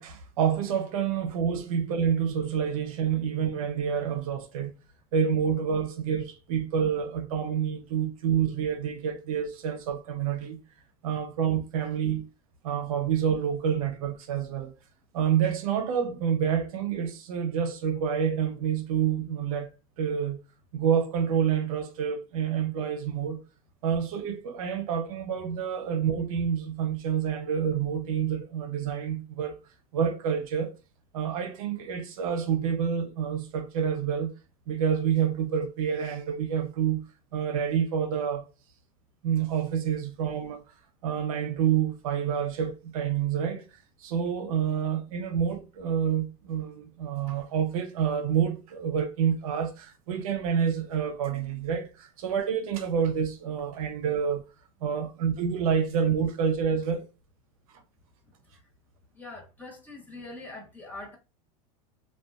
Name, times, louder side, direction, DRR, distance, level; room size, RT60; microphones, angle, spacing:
voice 1, 0.0-4.7 5.1-10.6 11.0-12.3 12.6-14.7 15.1-19.7 20.0-20.4 20.7-23.4 23.8-29.6 29.9-30.7 31.1-34.3 34.7-37.1 37.3-38.4 39.2-40.6 41.0-43.6 44.0-54.4 54.8-57.0, right 8 dB, 75° right, 0.6 m, -28 dB
voice 2, 59.1-61.2, left 2 dB, 10° left, 0.9 m, -43 dB
2.6 x 2.2 x 2.3 m
supercardioid pair, 120°, 18 cm